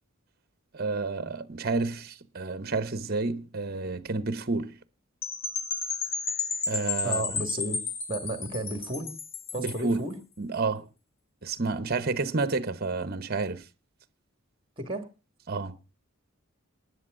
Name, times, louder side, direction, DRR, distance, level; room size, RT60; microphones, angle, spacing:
voice 1, 0.7-4.7 6.7-7.2 9.6-10.0 10.4-10.9 11.4-13.6 15.5-15.8, right 3 dB, 45° right, 1.0 m, -30 dB
Percussion / Wind chime, 5.2-9.9, left 5 dB, 60° left, 2.0 m, -32 dB
voice 2, 7.0-7.8 8.1-9.1 9.5-10.2 14.8-15.1, right 2 dB, 25° right, 2.2 m, -33 dB
19.5 x 11.0 x 3.8 m
head